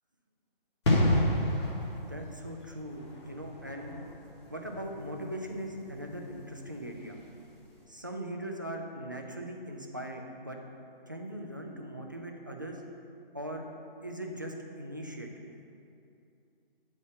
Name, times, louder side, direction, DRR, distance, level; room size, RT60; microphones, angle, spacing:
sound 1, 0.8-7.3 7.6-7.8, left 1 dB, 30° left, 1.2 m, -31 dB
voice 1, 2.1-3.9 4.5-7.2 7.9-10.6 11.1-12.8 13.3-13.7 14.0-15.3, right 1 dB, 20° right, 1 dB, 0.3 m, -40 dB
9.0 x 4.2 x 6.1 m, 2.6 s
hypercardioid pair, 155°, 29 cm